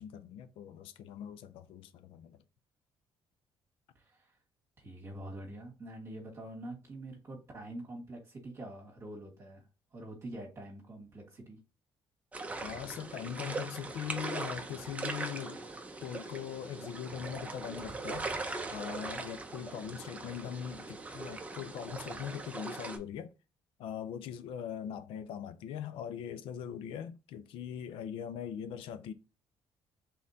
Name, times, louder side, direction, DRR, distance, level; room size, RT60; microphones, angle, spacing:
voice 1, 0.0-2.4 12.6-15.6 16.0-18.3 18.7-23.3 23.8-29.1, left 9 dB, 80° left, 0.5 m, -41 dB
voice 2, 3.9-4.3 4.8-9.6 9.9-11.6, right 1 dB, 30° right, 1.4 m, -45 dB
sound 1, 12.3-23.0, right 3 dB, 15° right, 0.6 m, -40 dB
4.3 x 3.7 x 2.6 m
cardioid pair, 140°, 9 cm